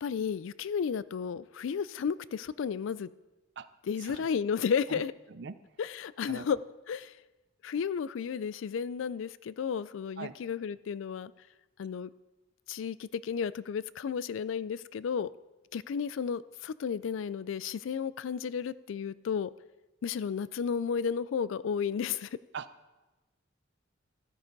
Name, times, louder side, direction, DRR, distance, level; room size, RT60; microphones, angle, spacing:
voice 1, 0.0-3.1 3.9-5.1 5.8-6.6 6.9-7.1 7.6-11.3 11.8-12.1 12.7-15.3 15.7-19.5 20.0-22.3, left 6 dB, 75° left, 18 dB, 0.4 m, -33 dB
voice 2, 3.6-3.7 4.0-4.3 4.9-5.0 5.3-5.6 6.3-6.5 10.2-10.3 22.5-22.7, right 5 dB, 60° right, 13 dB, 0.5 m, -41 dB
13.0 x 9.7 x 4.0 m, 1.1 s
head